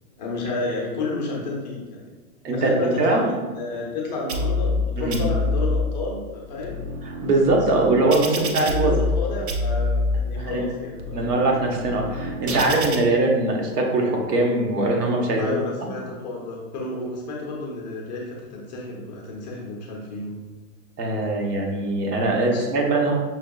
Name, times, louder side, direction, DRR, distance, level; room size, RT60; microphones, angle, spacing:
voice 1, 0.1-2.0 2.5-6.8 8.5-11.3 15.4-20.4 22.5-22.7, left 2 dB, 30° left, -2 dB, 0.6 m, -31 dB
voice 2, 2.4-3.2 5.0-5.3 7.0-9.0 10.4-10.6 11.1-15.5 21.0-23.2, right 2 dB, 85° right, 0 dB, 1.1 m, -22 dB
sound 1, 4.3-4.8 5.1-5.8 6.4-9.2 9.5-10.2 10.8-13.0, left 2 dB, 45° right, 0.5 m, -26 dB
5.9 x 2.5 x 2.3 m, 1.3 s
hypercardioid pair, 160°, 46 cm